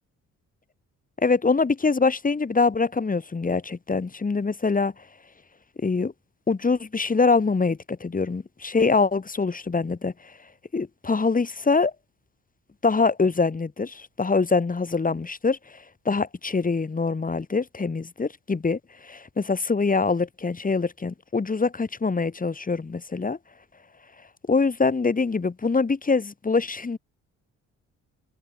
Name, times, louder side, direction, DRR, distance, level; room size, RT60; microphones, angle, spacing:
voice 1, 1.2-4.9 5.8-6.1 6.5-10.1 10.7-11.9 12.8-15.6 16.0-23.4 24.5-27.0, left 4 dB, 25° left, 4.6 m, -24 dB
cardioid pair, 90°, 30 cm